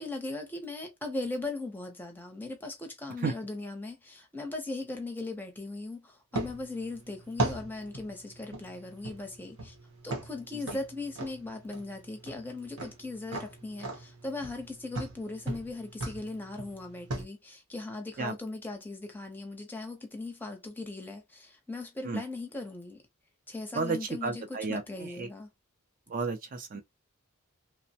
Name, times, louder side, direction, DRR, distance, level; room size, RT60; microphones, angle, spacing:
voice 1, 0.0-9.8 10.0-23.0 23.5-24.4 24.7-25.5, left 2 dB, 10° left, 0.6 m, -39 dB
sound 1, 6.3-17.2, right 2 dB, 70° right, 0.8 m, -38 dB
voice 2, 23.7-25.3 26.1-26.8, right 4 dB, 40° right, 0.4 m, -33 dB
2.9 x 2.1 x 2.7 m
head